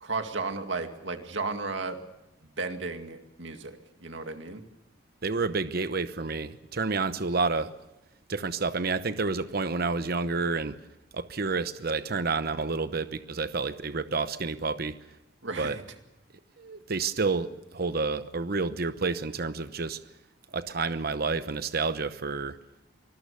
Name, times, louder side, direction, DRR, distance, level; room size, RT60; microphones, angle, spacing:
voice 1, 0.0-2.0 2.6-4.6 15.4-15.8, right 3 dB, 80° right, 6 dB, 2.2 m, -34 dB
voice 2, 5.2-7.7 8.3-10.8 11.1-15.0 15.6-15.8 16.6-20.0 20.5-22.6, right 4 dB, 55° right, 12 dB, 0.9 m, -29 dB
25.0 x 20.0 x 6.9 m, 0.92 s
head